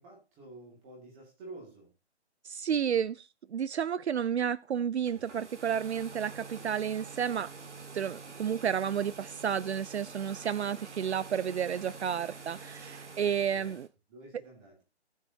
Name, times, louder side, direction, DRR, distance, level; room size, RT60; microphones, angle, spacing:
voice 1, 0.0-1.9 13.5-13.8 14.1-14.8, right 2 dB, 10° right, 2.1 m, -49 dB
voice 2, 2.4-7.5 7.9-13.9, right 8 dB, 70° right, 0.5 m, -31 dB
sound 1, 5.0-13.9, right 4 dB, 85° right, 2.1 m, -47 dB
18.0 x 6.4 x 2.8 m
hypercardioid pair, 170°, 34 cm